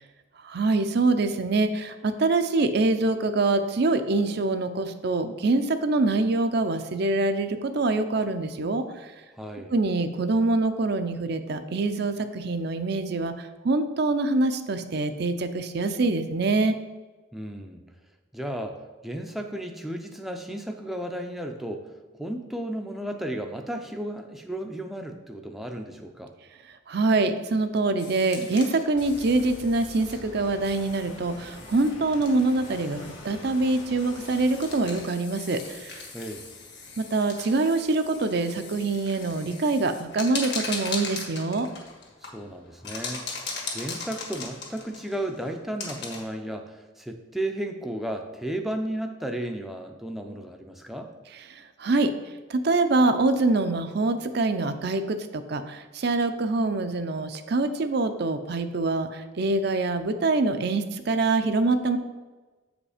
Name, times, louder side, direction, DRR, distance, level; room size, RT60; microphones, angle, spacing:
voice 1, 0.4-9.1 9.7-16.8 26.9-36.0 37.0-41.7 51.5-52.1 52.5-62.0, right 3 dB, 55° right, 8 dB, 0.5 m, -25 dB
voice 2, 9.3-9.7 17.3-17.8 18.3-18.8 19.0-21.9 22.2-26.3 36.1-36.5 42.2-43.5 43.7-51.1, right 1 dB, ahead, 3 dB, 0.5 m, -34 dB
sound 1, 28.0-46.2, left 4 dB, 55° left, 1.5 m, -39 dB
sound 2, 28.9-35.0, left 1 dB, 80° left, 1.9 m, -45 dB
7.3 x 5.0 x 4.9 m, 1.2 s
head